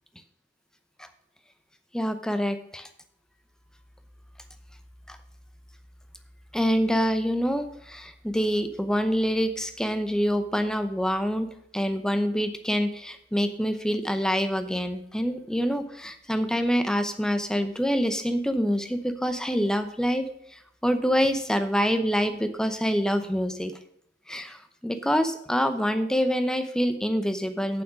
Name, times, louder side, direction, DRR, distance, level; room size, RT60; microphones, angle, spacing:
voice 1, 1.9-2.9 5.1-5.2 6.5-11.5 11.7-23.7 24.3-27.8, equal, 5° left, 9 dB, 0.7 m, -26 dB
8.8 x 7.7 x 4.9 m, 0.73 s
head